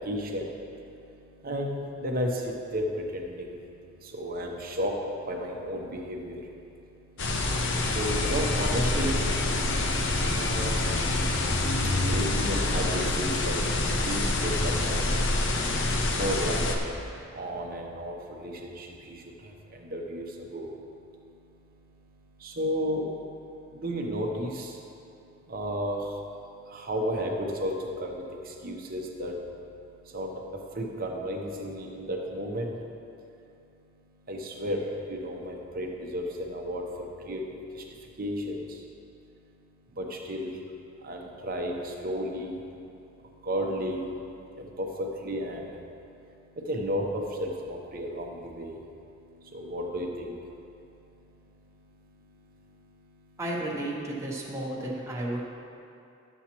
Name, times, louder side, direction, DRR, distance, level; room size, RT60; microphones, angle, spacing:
voice 1, 0.1-0.4 1.4-1.8 2.0-2.3 2.7-2.8 3.1-3.5 4.1-4.9 5.3-6.4 7.9-9.2 10.4-10.7 12.1-13.5 14.0-14.5 14.8-15.0 16.1-16.9 17.4-18.2 18.4-18.9 19.9-20.2 20.5-20.7 22.4-23.1 23.8-24.7 25.5-26.0 26.9-27.7 28.0-28.1 28.6-29.3 30.1-30.3 30.8-32.7 34.3-34.8 35.1-36.8 37.3-37.4 38.2-38.6 40.0-40.5 41.1-42.6 43.5-44.0 44.8-44.9 45.2-45.6 46.7-48.7 49.5-50.3, equal, 45° right, 1 dB, 0.9 m, -32 dB
sound 1, 7.2-16.8, left 2 dB, 60° left, 0.7 m, -26 dB
voice 2, 53.4-55.4, right 1 dB, 15° right, -4 dB, 0.9 m, -32 dB
11.5 x 7.1 x 2.9 m, 2.6 s
head